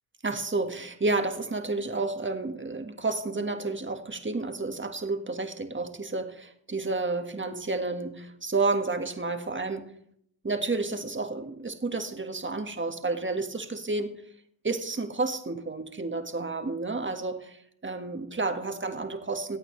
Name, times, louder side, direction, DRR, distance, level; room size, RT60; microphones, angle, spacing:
voice 1, 0.2-9.9 10.4-14.1 14.6-19.6, right 3 dB, 25° right, 1.7 m, -31 dB
23.0 x 8.7 x 3.3 m
supercardioid pair, 45°, 49 cm